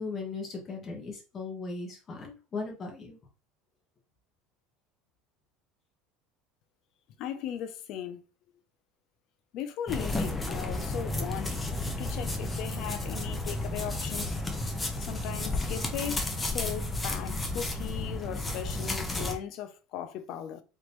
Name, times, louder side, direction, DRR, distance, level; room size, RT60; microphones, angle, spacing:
voice 1, 0.0-3.2, left 3 dB, 35° left, 1.6 m, -38 dB
voice 2, 7.2-8.2 9.5-11.6 12.0-14.4 15.0-20.6, left 10 dB, 60° left, 0.6 m, -38 dB
sound 1, 9.9-19.4, left 2 dB, 15° left, 0.8 m, -32 dB
3.7 x 3.6 x 3.0 m
supercardioid pair, 120°, 0 cm